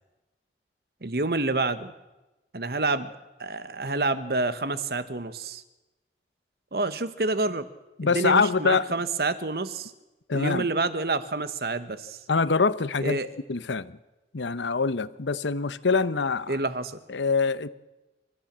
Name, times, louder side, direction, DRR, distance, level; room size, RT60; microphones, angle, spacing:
voice 1, 1.0-1.9 2.5-3.1 3.4-5.6 6.7-7.7 8.0-9.9 10.3-12.2 13.0-13.3 16.5-17.0, right 3 dB, 60° right, 1.1 m, -28 dB
voice 2, 8.0-8.9 10.3-10.6 12.3-13.2 13.5-14.0 14.3-16.6 17.1-17.7, left 4 dB, 90° left, 0.8 m, -24 dB
27.0 x 13.5 x 7.4 m
head